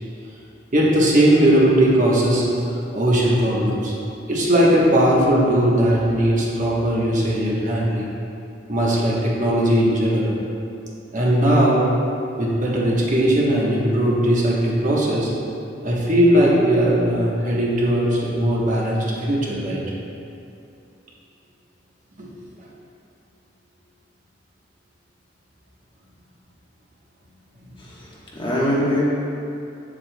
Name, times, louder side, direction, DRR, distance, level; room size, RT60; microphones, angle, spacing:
voice 1, 0.7-3.9 4.3-8.1 8.7-10.4 11.1-11.9 12.4-15.3 15.8-19.8 22.2-22.3, right 1 dB, 45° right, -4 dB, 1.1 m, -19 dB
voice 2, 27.8-29.0, left 1 dB, 25° left, -6 dB, 1.1 m, -23 dB
8.2 x 7.3 x 2.2 m, 2.7 s
head